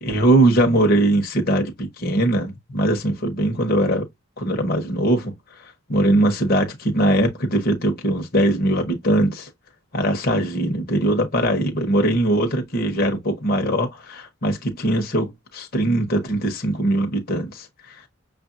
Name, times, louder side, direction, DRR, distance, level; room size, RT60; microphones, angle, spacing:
voice 1, 0.0-4.1 4.4-5.3 5.9-9.5 9.9-18.0, right 1 dB, 50° left, 1.1 m, -21 dB
6.5 x 2.5 x 2.6 m
head